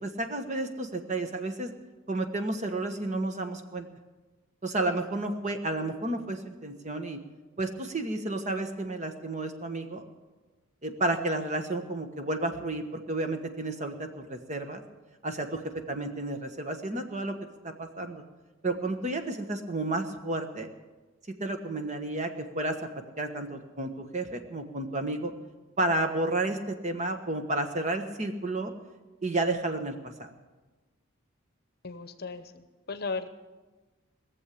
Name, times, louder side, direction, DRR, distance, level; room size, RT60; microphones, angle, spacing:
voice 1, 0.0-1.7 2.1-3.9 4.6-7.2 7.6-10.0 10.8-14.8 15.2-15.6 15.9-17.3 17.6-18.2 18.6-20.7 21.4-22.7 23.2-25.3 25.8-28.7 29.2-30.3, right 2 dB, 35° right, 6 dB, 1.2 m, -31 dB
voice 2, 31.8-33.3, left 4 dB, 50° left, 10 dB, 0.9 m, -36 dB
20.5 x 7.3 x 8.5 m, 1.2 s
head